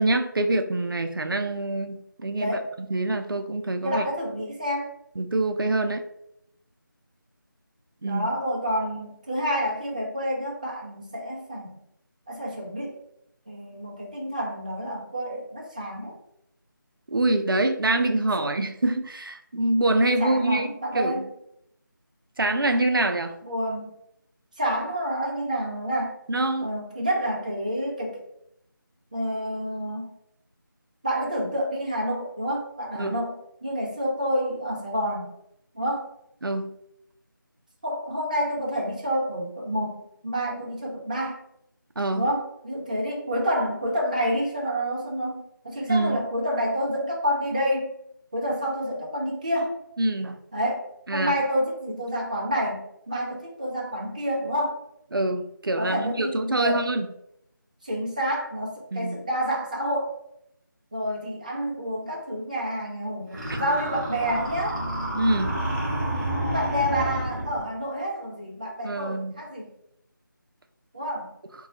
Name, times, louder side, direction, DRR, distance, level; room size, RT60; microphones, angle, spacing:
voice 1, 0.0-2.6 2.9-4.1 5.2-6.0 8.0-8.3 17.1-20.7 20.9-21.2 22.4-23.3 26.3-26.7 33.0-33.2 36.4-36.7 42.0-42.3 45.9-46.2 50.0-50.4 51.1-51.3 55.1-57.1 58.9-59.2 63.5-63.6 65.1-65.6 68.8-69.4, right 2 dB, 85° right, 6 dB, 0.4 m, -25 dB
voice 2, 2.4-2.7 3.8-4.9 8.0-11.8 12.3-13.0 13.5-16.2 18.4-18.5 20.2-21.3 23.4-24.0 24.6-26.2 26.6-28.3 29.1-30.2 31.0-35.4 35.7-36.1 37.8-41.4 42.1-47.9 48.3-49.7 50.5-54.8 55.8-56.9 57.8-60.1 60.9-64.8 66.5-69.7 70.9-71.3, equal, 20° right, -2 dB, 0.4 m, -28 dB
sound 1, 63.3-67.7, right 1 dB, ahead, 0.7 m, -29 dB
2.2 x 2.1 x 3.7 m, 0.77 s
figure-of-eight pair, 165°, 11 cm